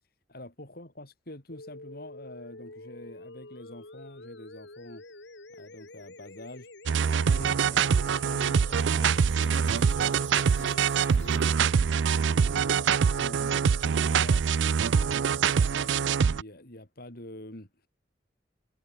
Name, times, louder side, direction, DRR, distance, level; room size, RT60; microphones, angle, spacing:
voice 1, 0.3-5.0 5.5-6.7 7.1-14.5 14.9-17.9, left 1 dB, 55° left, 5.0 m, -46 dB
sound 1, 1.5-11.5, left 2 dB, 75° left, 3.1 m, -48 dB
sound 2, 6.9-16.4, right 6 dB, 90° right, 0.4 m, -24 dB
head